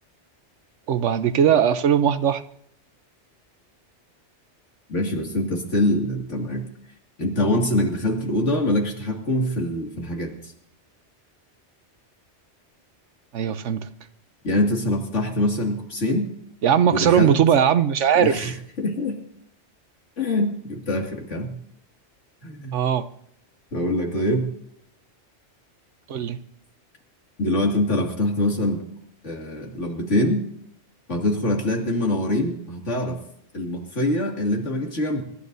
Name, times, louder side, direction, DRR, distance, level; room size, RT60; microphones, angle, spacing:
voice 1, 0.9-2.4 13.3-13.9 16.6-18.5 22.7-23.1 26.1-26.4, right 8 dB, 85° right, 12 dB, 1.1 m, -19 dB
voice 2, 4.9-6.7 7.2-10.5 14.4-16.3 16.9-17.4 18.2-19.2 20.2-21.5 22.4-22.8 23.7-24.5 27.4-28.8 29.2-30.4 31.1-33.2 33.5-35.2, left 1 dB, 85° left, 2 dB, 2.6 m, -24 dB
25.5 x 13.0 x 2.7 m, 0.68 s
omnidirectional pair, 1.2 m